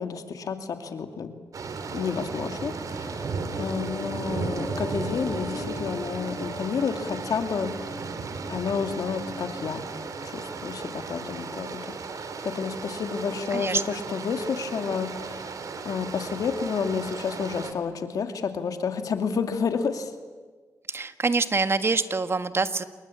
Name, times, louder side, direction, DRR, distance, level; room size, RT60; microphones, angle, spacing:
voice 1, 0.0-1.3 1.9-8.0 8.5-9.8 10.2-15.5 15.8-20.1, left 6 dB, 75° left, 7 dB, 2.5 m, -30 dB
sound 1, 1.5-17.7, right 4 dB, 65° right, 2.9 m, -35 dB
sound 2, 2.8-11.2 11.5-11.7, left 2 dB, ahead, 5.2 m, -42 dB
voice 2, 13.5-14.0 20.9-22.8, right 4 dB, 40° right, 10 dB, 1.6 m, -25 dB
28.0 x 22.5 x 8.6 m, 1.4 s
cardioid pair, 60°, 6 cm